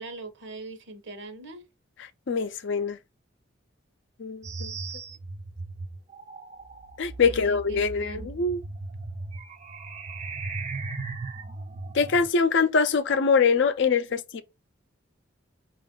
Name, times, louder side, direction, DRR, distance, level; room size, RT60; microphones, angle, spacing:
voice 1, 0.0-1.6 7.2-8.3, right 2 dB, 60° right, 0.9 m, -41 dB
voice 2, 2.3-3.0 4.2-4.7 7.0-8.6 11.9-14.4, left 5 dB, 65° left, 0.5 m, -23 dB
sound 1, 4.4-12.3, right 3 dB, 35° right, 0.5 m, -37 dB
4.9 x 2.5 x 3.7 m
head